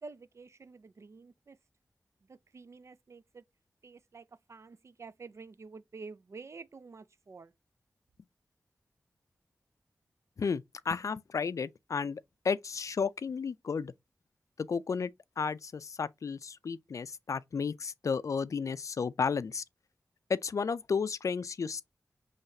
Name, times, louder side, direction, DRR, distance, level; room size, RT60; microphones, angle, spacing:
voice 1, 0.0-1.6 2.3-3.4 3.8-7.5, right 4 dB, 55° right, 0.4 m, -49 dB
voice 2, 10.4-13.9 14.6-15.1 15.4-19.6 20.3-21.8, left 5 dB, 70° left, 0.4 m, -33 dB
5.6 x 3.2 x 2.6 m
cardioid pair, 55°, 6 cm